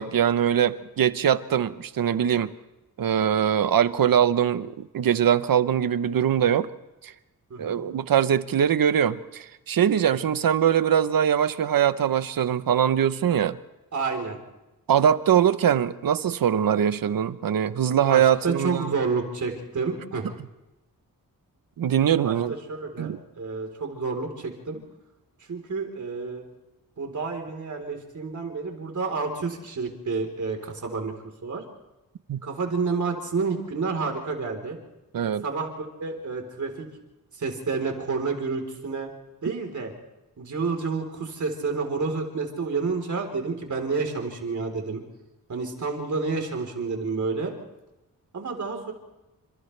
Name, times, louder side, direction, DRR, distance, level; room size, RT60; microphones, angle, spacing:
voice 1, 0.0-2.5 3.0-6.7 7.0-7.1 7.6-13.6 14.9-18.9 21.8-22.5 23.0-23.2 32.3-32.4 35.1-35.4, right 9 dB, 75° right, 0.9 m, -22 dB
voice 2, 13.9-14.4 18.0-20.2 22.2-24.8 25.5-26.4 27.0-31.1 31.4-31.6 32.4-34.8 35.4-36.9 37.3-39.1 39.4-39.9 40.4-45.0 45.5-47.5 48.3-48.9, right 4 dB, 55° right, 4.0 m, -29 dB
29.5 x 26.5 x 3.4 m
wide cardioid pair, 120°, 35 cm